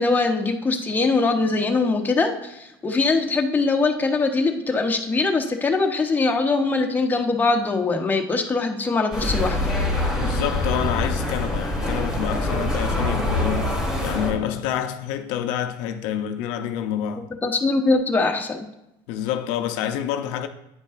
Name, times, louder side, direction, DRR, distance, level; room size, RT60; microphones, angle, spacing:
voice 1, 0.0-9.7 17.4-18.7, left 3 dB, 15° left, 0.8 m, -22 dB
sound 1, 9.1-14.3, left 1 dB, 5° right, 2.0 m, -24 dB
voice 2, 10.1-17.3 19.1-20.5, left 9 dB, 75° left, 0.5 m, -28 dB
9.3 x 5.3 x 2.4 m
supercardioid pair, 115°, 12 cm